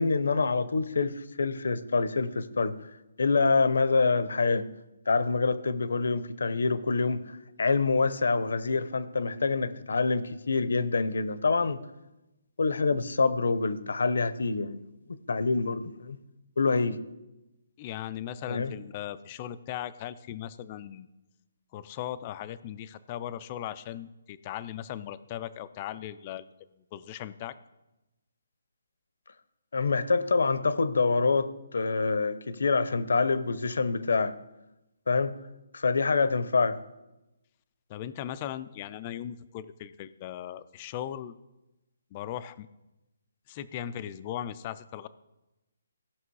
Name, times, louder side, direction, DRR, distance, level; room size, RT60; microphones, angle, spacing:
voice 1, 0.0-2.7 3.2-4.7 5.1-11.8 12.6-14.9 15.3-16.2 16.6-17.0 18.5-18.7 29.7-34.3 35.1-35.4 35.7-36.8, left 4 dB, 70° left, 15 dB, 0.7 m, -26 dB
voice 2, 17.8-21.1 21.7-26.5 26.9-27.6 37.9-41.3 42.1-42.7 43.5-45.1, left 11 dB, 20° left, 14 dB, 0.3 m, -38 dB
16.0 x 6.0 x 4.8 m, 0.99 s
hypercardioid pair, 175°, 0 cm